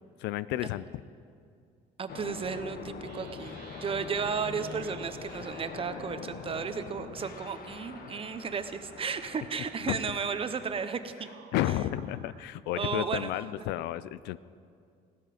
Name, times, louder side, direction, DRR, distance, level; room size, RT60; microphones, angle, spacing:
voice 1, 0.2-0.8 9.9-10.0 11.5-14.4, left 14 dB, 85° left, 17 dB, 0.4 m, -31 dB
voice 2, 2.0-11.3 12.8-13.3, right 6 dB, 35° right, 10 dB, 0.8 m, -34 dB
sound 1, 2.1-11.1, left 6 dB, 60° left, 1.0 m, -44 dB
sound 2, 3.0-12.5, right 8 dB, 75° right, 1.1 m, -53 dB
16.5 x 12.5 x 5.0 m, 2.3 s
cardioid pair, 110°, 17 cm